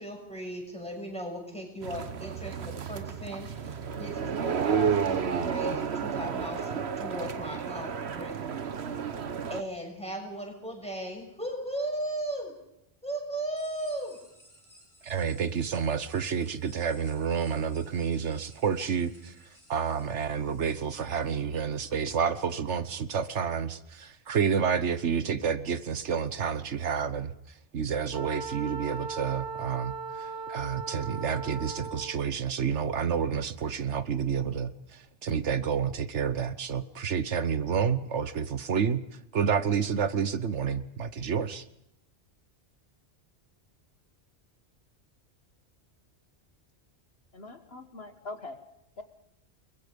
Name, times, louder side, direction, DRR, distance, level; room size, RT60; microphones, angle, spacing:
voice 1, 0.0-8.3 9.5-12.5 13.0-14.2, right 1 dB, 5° left, 1 dB, 6.8 m, -37 dB
sound 1, 1.8-9.6, right 7 dB, 65° right, 1.3 m, -31 dB
sound 2, 13.6-21.4, equal, 30° left, 5.9 m, -58 dB
voice 2, 15.0-19.3 19.7-27.3 27.7-39.0 39.3-41.6, right 7 dB, 85° right, 13 dB, 1.4 m, -29 dB
Wind instrument woodwind instrument, 28.1-32.3, right 4 dB, 75° left, 3.6 m, -38 dB
voice 3, 47.3-48.6 49.0-49.1, left 2 dB, 60° left, 8 dB, 1.7 m, -42 dB
30.0 x 22.0 x 5.3 m, 0.83 s
omnidirectional pair, 1.2 m